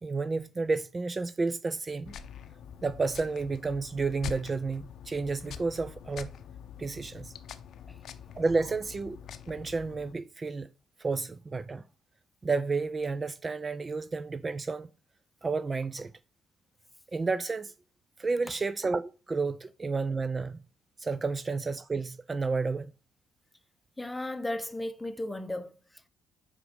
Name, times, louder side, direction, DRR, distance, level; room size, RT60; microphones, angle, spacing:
voice 1, 0.0-2.1 2.8-6.3 6.8-7.3 8.4-9.2 9.5-10.7 11.0-11.8 12.4-14.9 15.4-16.1 17.1-17.7 18.2-20.6 21.0-22.9, right 4 dB, 30° right, 0.3 m, -31 dB
sound 1, 2.1-10.1, left 7 dB, 65° left, 0.6 m, -45 dB
voice 2, 24.0-26.1, left 1 dB, 10° left, 0.8 m, -36 dB
5.1 x 4.9 x 4.9 m
supercardioid pair, 60°, 0 cm